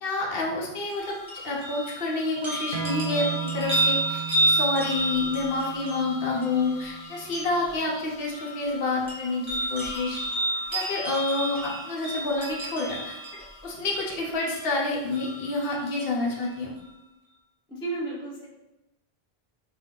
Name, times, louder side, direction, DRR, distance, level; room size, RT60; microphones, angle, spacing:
voice 1, 0.0-1.2 1.4-10.2 10.7-13.2 13.6-16.7, left 2 dB, 65° left, -3 dB, 0.9 m, -28 dB
sound 1, 0.9-15.9 16.4-16.5, right 1 dB, 30° right, 0.9 m, -31 dB
sound 2, 2.7-7.9, right 8 dB, 65° right, 0.8 m, -37 dB
voice 2, 17.7-18.5, right 3 dB, 5° left, -4 dB, 0.4 m, -33 dB
2.7 x 2.3 x 3.5 m, 0.95 s
omnidirectional pair, 1.1 m